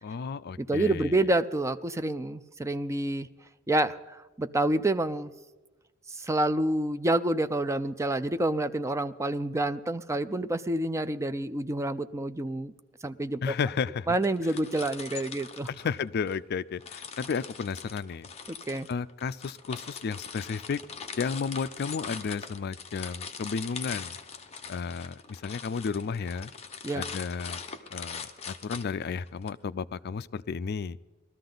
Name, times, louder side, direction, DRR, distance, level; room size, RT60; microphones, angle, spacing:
voice 1, 0.0-1.2 13.4-14.1 15.7-18.3 18.9-20.8 21.2-24.2 24.7-26.5 26.9-27.6 27.9-31.0, left 5 dB, 50° left, 17 dB, 0.4 m, -33 dB
voice 2, 0.6-3.3 3.7-5.3 6.1-12.7 13.0-13.4 14.1-15.7 18.5-18.9 26.8-27.0, right 1 dB, 15° right, 11 dB, 0.4 m, -28 dB
sound 1, 14.1-16.4 16.8-29.5, left 6 dB, 30° left, 0.9 m, -42 dB
19.5 x 13.5 x 3.9 m, 1.2 s
head